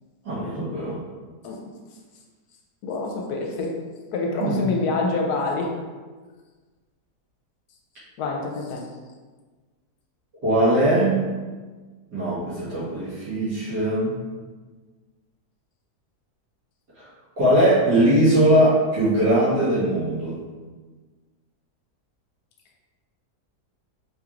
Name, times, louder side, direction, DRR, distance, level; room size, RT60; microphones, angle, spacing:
voice 1, 0.2-1.0 4.4-4.7 10.4-11.2 12.1-14.1 17.0-17.1 17.4-20.4, right 1 dB, 80° right, -11 dB, 2.2 m, -20 dB
voice 2, 2.8-3.8 4.1-5.7 8.2-8.8, left 3 dB, 75° left, 0 dB, 1.1 m, -26 dB
4.5 x 3.0 x 2.4 m, 1.4 s
omnidirectional pair, 1.7 m